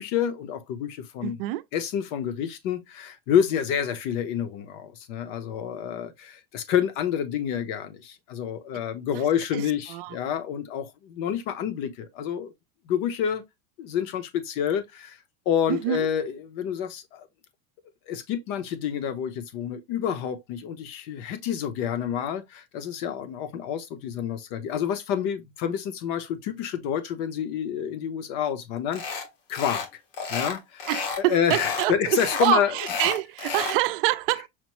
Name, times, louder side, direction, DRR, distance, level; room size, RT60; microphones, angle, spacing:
voice 1, 0.0-1.4 1.7-12.5 12.9-13.4 13.8-15.2 15.5-17.3 18.1-29.2 29.5-29.9 30.3-30.9 31.2-32.8 33.4-33.5, left 9 dB, 45° left, 0.8 m, -28 dB
voice 2, 1.2-1.6 9.1-9.2 9.5-9.6 9.9-10.1 15.7-16.1 30.9-34.5, right 17 dB, 65° right, 0.5 m, -26 dB
sound 1, 28.9-29.3 29.5-29.9 30.1-31.2 31.5-31.9 32.2-33.8, left 5 dB, 75° left, 1.4 m, -31 dB
5.8 x 2.0 x 3.0 m
supercardioid pair, 170°, 30 cm